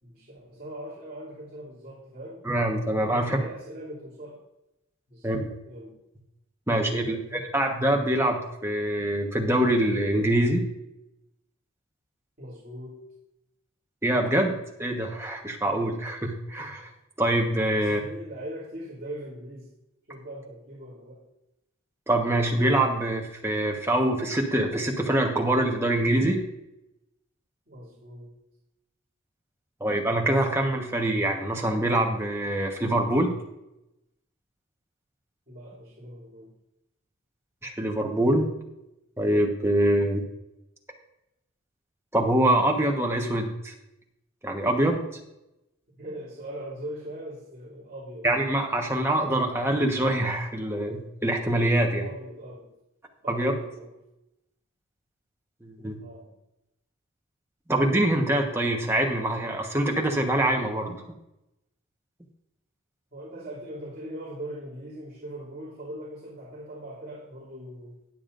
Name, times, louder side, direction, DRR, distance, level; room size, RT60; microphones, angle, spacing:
voice 1, 0.0-2.4 3.1-4.4 5.1-6.0 6.7-7.6 12.4-13.0 17.7-19.7 20.1-21.3 27.7-28.4 35.5-36.5 45.9-48.3 52.0-52.8 53.2-53.9 55.8-56.3 63.1-68.0, right 1 dB, 40° right, -8 dB, 2.8 m, -41 dB
voice 2, 2.4-3.4 5.2-5.4 6.7-10.7 14.0-16.8 17.2-18.0 22.1-26.4 29.8-33.3 37.6-38.5 39.2-40.2 42.1-43.7 44.4-45.0 48.2-52.1 53.3-53.5 55.6-56.0 57.7-61.0, right 1 dB, 10° right, 1 dB, 1.2 m, -24 dB
19.5 x 7.2 x 2.6 m, 0.89 s
head